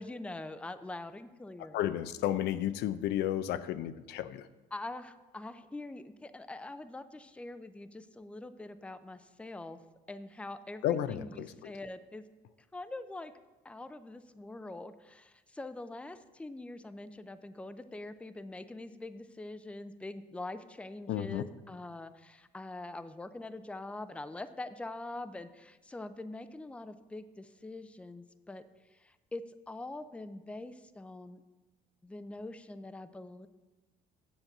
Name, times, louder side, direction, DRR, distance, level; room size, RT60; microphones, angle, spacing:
voice 1, 0.0-1.8 4.7-9.8 10.1-12.2 12.7-13.3 13.6-28.6 29.0-31.4 32.0-33.5, left 2 dB, 5° left, 12 dB, 0.5 m, -44 dB
voice 2, 1.7-4.5 10.8-11.7 21.1-21.4, left 11 dB, 80° left, 13 dB, 0.5 m, -32 dB
7.5 x 7.4 x 6.5 m, 1.2 s
cardioid pair, 110°, 17 cm